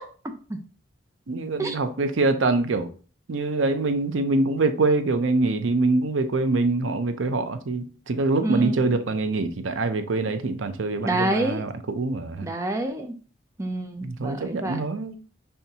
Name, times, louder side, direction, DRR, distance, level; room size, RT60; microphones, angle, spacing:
voice 1, 1.3-2.9 3.3-12.5 14.0-15.2, right 3 dB, 85° right, 0.6 m, -24 dB
voice 2, 8.4-8.9 11.0-11.6 12.4-13.1 13.6-14.8, right 2 dB, 15° right, 0.5 m, -27 dB
5.6 x 3.4 x 2.8 m
head